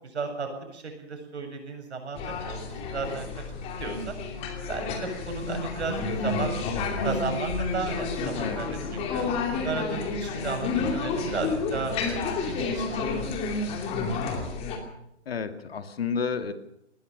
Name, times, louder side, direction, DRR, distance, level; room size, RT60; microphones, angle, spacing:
voice 1, 0.0-3.3 3.8-4.2 4.7-6.6 7.0-13.3 14.0-14.2, right 4 dB, 65° right, 4 dB, 7.7 m, -34 dB
sound 1, 2.1-14.8, left 4 dB, 15° left, 2.7 m, -30 dB
voice 2, 15.3-16.5, left 6 dB, 55° left, 9 dB, 2.2 m, -31 dB
20.5 x 19.5 x 6.7 m, 0.78 s
hypercardioid pair, 155°, 36 cm